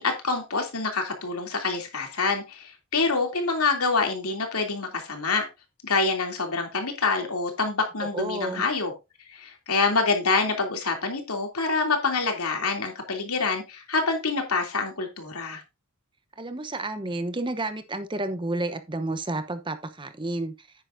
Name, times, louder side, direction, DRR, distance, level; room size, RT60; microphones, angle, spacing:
voice 1, 0.0-5.4 5.8-8.9 9.3-15.6, left 4 dB, 90° left, 3.0 m, -26 dB
voice 2, 8.1-8.6 16.4-20.7, right 2 dB, 20° right, 0.9 m, -31 dB
9.6 x 9.4 x 2.7 m
head